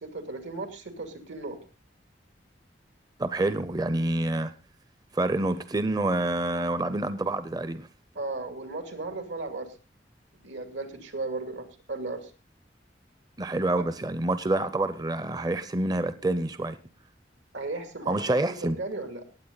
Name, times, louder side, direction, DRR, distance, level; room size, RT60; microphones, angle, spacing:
voice 1, 0.0-1.6 8.2-9.7 10.4-12.3 17.5-19.2, right 3 dB, 85° right, 2.4 m, -35 dB
voice 2, 3.2-4.5 5.1-7.9 13.4-16.8 18.1-18.8, right 2 dB, 20° right, 0.5 m, -27 dB
18.5 x 8.1 x 3.9 m
head